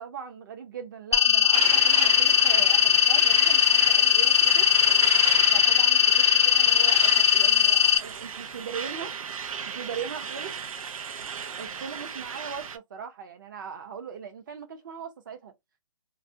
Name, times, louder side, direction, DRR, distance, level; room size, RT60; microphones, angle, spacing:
voice 1, 0.0-4.7 5.5-6.3 6.5-9.2 9.7-10.5 11.6-15.5, right 7 dB, 35° right, 0.6 m, -39 dB
sound 1, 1.1-8.0, left 10 dB, 55° left, 0.4 m, -20 dB
Truck, 1.5-12.8, right 7 dB, 85° right, 0.5 m, -34 dB
2.3 x 2.1 x 2.6 m
hypercardioid pair, 165°, 17 cm